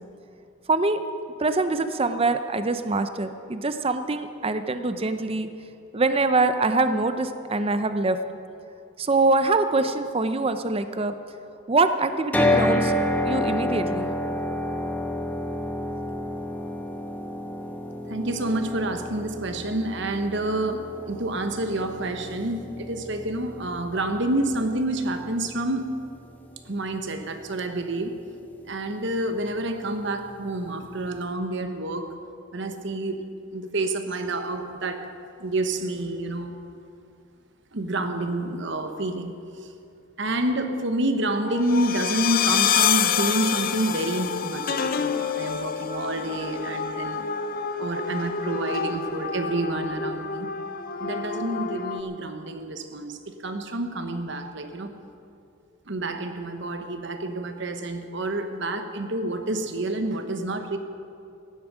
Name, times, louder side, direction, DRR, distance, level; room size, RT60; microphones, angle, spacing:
voice 1, 0.7-1.0 1.4-5.5 5.9-8.2 9.0-11.1 11.7-12.9 13.3-14.1, right 3 dB, 30° right, 10 dB, 0.6 m, -24 dB
sound 1, 12.3-26.5, left 1 dB, 10° left, 1.0 m, -29 dB
voice 2, 18.1-26.0 26.7-28.2 28.7-32.2 32.5-35.1 35.4-36.5 37.7-39.7 40.2-47.2 47.8-50.5 51.0-54.9 55.9-60.8, right 1 dB, 60° right, 7 dB, 1.1 m, -28 dB
sound 2, 41.5-52.0, left 7 dB, 45° left, 0.6 m, -27 dB
15.5 x 11.0 x 6.1 m, 2.6 s
head